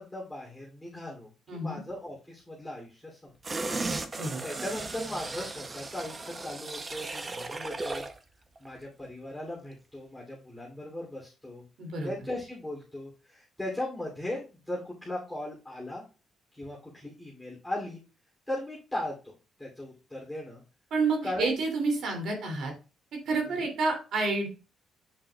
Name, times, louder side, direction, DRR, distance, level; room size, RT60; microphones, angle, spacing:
voice 1, 0.0-3.3 4.4-8.1 8.6-11.6 12.0-16.0 16.6-18.0 18.5-19.3 19.6-20.6 21.2-21.6 23.6-23.7, left 1 dB, 5° left, -5 dB, 3.0 m, -38 dB
voice 2, 1.5-1.8 4.1-4.4 11.8-12.1 20.9-22.7 23.2-24.5, right 3 dB, 70° right, 2 dB, 2.8 m, -29 dB
sound 1, 3.4-8.2 8.6-8.7, right 3 dB, 30° right, 0.7 m, -36 dB
8.0 x 5.6 x 2.4 m, 0.32 s
cardioid pair, 90°, 0 cm